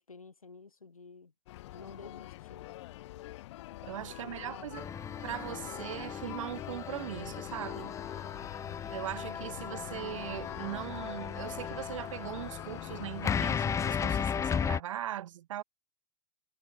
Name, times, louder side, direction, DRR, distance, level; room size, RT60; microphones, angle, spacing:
voice 1, 0.0-1.3 1.7-2.6 4.2-4.7, left 4 dB, 90° left, 1.9 m, -51 dB
sound 1, 1.5-14.2, left 17 dB, 55° left, 0.5 m, -45 dB
voice 2, 3.8-4.9 5.2-8.0 8.9-15.6, right 12 dB, 70° right, 0.6 m, -40 dB
sound 2, 4.8-14.8, left 7 dB, 15° left, 0.7 m, -36 dB
figure-of-eight pair, 95°, 17 cm